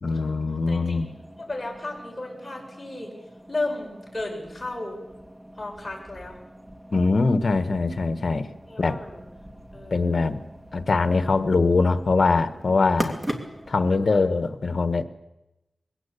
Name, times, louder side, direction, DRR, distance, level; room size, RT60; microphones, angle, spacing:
voice 1, 0.0-1.1 6.9-8.5 8.8-9.0 9.9-10.4 10.7-13.2 13.7-15.0, left 3 dB, 65° left, 11 dB, 1.3 m, -22 dB
voice 2, 0.7-1.0 1.4-3.1 3.5-5.0 5.5-6.4 8.7-9.2 9.7-10.4 13.8-14.3 15.0-15.1, left 2 dB, 25° left, 0 dB, 6.5 m, -34 dB
sound 1, 1.0-13.8, right 1 dB, 20° right, 2.6 m, -40 dB
22.0 x 17.0 x 8.4 m, 0.95 s
wide cardioid pair, 90°, 0 cm